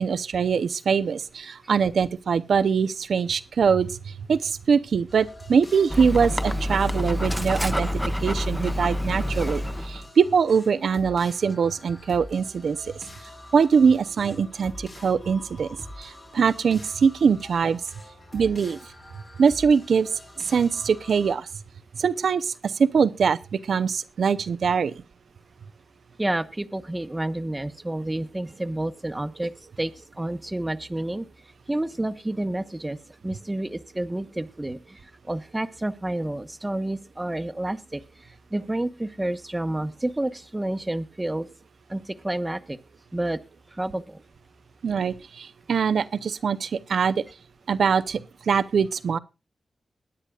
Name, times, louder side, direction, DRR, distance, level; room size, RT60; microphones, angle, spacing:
voice 1, 0.0-7.9 8.2-12.8 13.5-15.7 16.0-17.8 18.3-18.8 19.4-20.1 20.5-21.5 21.9-24.9 44.8-47.2 47.7-48.2 48.5-49.2, right 6 dB, 80° right, 0.6 m, -23 dB
sound 1, 5.1-21.3, left 1 dB, 45° left, 3.9 m, -45 dB
Dog, 5.9-10.1, equal, 5° left, 1.1 m, -27 dB
voice 2, 26.2-31.3 31.7-33.0 33.2-41.5 41.9-42.8 43.1-43.4 43.7-44.2, right 1 dB, 20° right, 1.1 m, -30 dB
21.5 x 9.8 x 2.4 m
cardioid pair, 45°, 0 cm